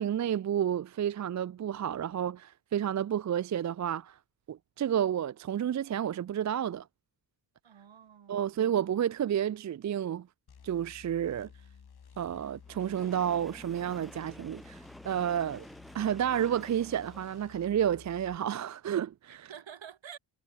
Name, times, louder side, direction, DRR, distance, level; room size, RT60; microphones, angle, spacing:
voice 1, 0.0-4.1 4.5-6.9 8.3-10.3 10.6-11.5 12.2-15.7 15.9-19.5, right 9 dB, 40° right, 0.4 m, -31 dB
voice 2, 7.6-8.6 19.3-20.2, right 8 dB, 65° right, 2.2 m, -49 dB
sound 1, 10.5-18.4, left 7 dB, 50° left, 1.7 m, -54 dB
Train, 12.6-17.6, equal, ahead, 0.8 m, -51 dB
cardioid pair, 50°, 49 cm